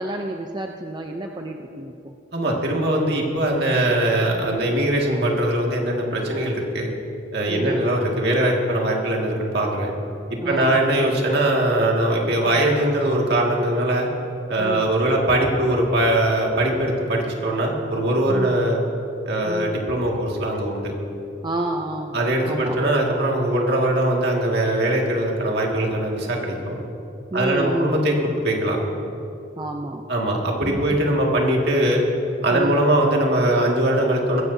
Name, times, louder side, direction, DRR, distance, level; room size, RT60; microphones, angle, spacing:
voice 1, 0.0-2.2 7.5-7.9 10.4-10.8 12.5-12.6 14.6-14.9 18.3-18.6 19.4-19.8 21.4-22.2 22.4-22.8 27.3-28.0 29.6-30.0 30.6-30.8 32.5-32.9, right 1 dB, 25° right, 3 dB, 0.5 m, -29 dB
voice 2, 2.3-6.9 7.3-9.9 10.3-14.1 14.5-18.8 19.3-20.9 22.1-26.8 27.3-28.8 30.1-32.0 32.4-34.4, right 1 dB, 60° right, -1 dB, 2.0 m, -21 dB
21.5 x 15.5 x 2.7 m, 2.9 s
head